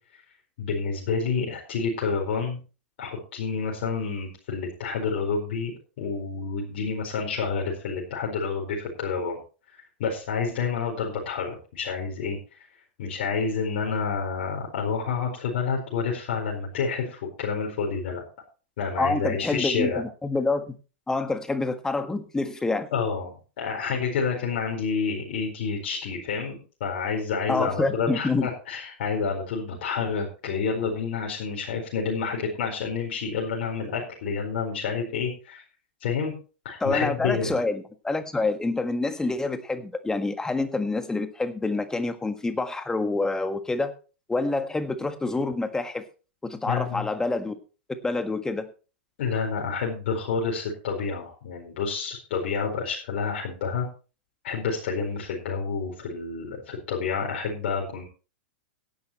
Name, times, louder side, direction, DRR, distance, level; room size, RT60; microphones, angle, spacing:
voice 1, 0.6-2.6 3.0-5.7 6.0-9.4 10.0-12.4 13.0-18.2 18.8-20.0 22.9-35.6 36.0-36.3 36.6-37.5 46.7-47.1 49.2-53.9 54.4-58.0, left 5 dB, 60° left, -2 dB, 4.6 m, -29 dB
voice 2, 19.0-20.7 21.1-22.9 27.5-28.5 36.8-43.9 44.3-46.0 46.4-47.5 48.0-48.7, left 3 dB, 10° left, 9 dB, 1.5 m, -27 dB
17.0 x 11.0 x 3.1 m, 0.35 s
hypercardioid pair, 105°, 6 cm